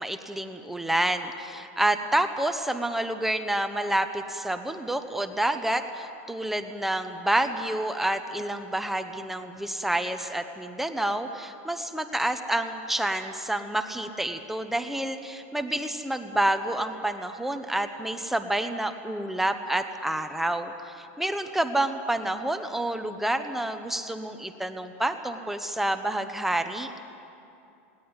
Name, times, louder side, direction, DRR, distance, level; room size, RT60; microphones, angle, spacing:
voice 1, 0.0-26.9, right 1 dB, 5° right, 7 dB, 0.9 m, -28 dB
18.5 x 18.5 x 9.6 m, 2.7 s
supercardioid pair, 140°, 7 cm